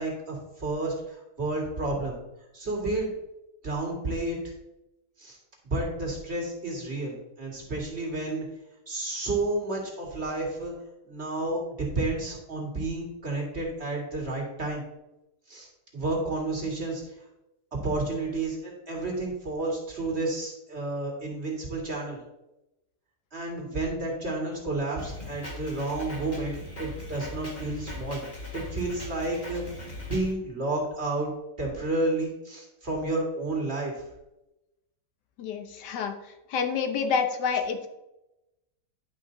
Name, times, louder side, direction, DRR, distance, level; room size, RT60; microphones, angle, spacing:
voice 1, 0.0-2.2 2.5-3.1 3.6-4.5 5.2-5.4 5.6-8.5 8.9-10.7 11.1-14.8 15.5-17.1 17.8-22.2 23.3-28.2 28.5-31.3 31.6-34.1, right 2 dB, 40° right, -1 dB, 2.3 m, -31 dB
Drum kit, 25.0-30.3, left 2 dB, 25° left, 1.9 m, -40 dB
voice 2, 35.4-37.9, left 6 dB, 85° left, 6 dB, 1.5 m, -28 dB
10.5 x 5.4 x 3.9 m, 0.93 s
omnidirectional pair, 1.8 m